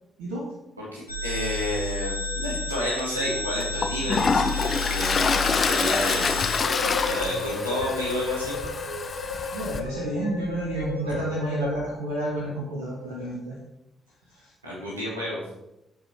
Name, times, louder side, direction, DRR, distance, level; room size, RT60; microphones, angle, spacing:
voice 1, 0.8-6.5 7.0-8.6 14.6-15.4, equal, 85° right, -5 dB, 2.3 m, -31 dB
sound 1, 1.1-11.7, left 3 dB, 90° left, 0.9 m, -32 dB
Toilet flush, 3.0-3.1 3.6-9.8, left 5 dB, 40° left, 0.9 m, -26 dB
voice 2, 9.2-13.5 14.4-14.5, right 1 dB, 70° right, -3 dB, 1.4 m, -30 dB
15.0 x 5.0 x 3.4 m, 0.89 s
figure-of-eight pair, 40°, 0 cm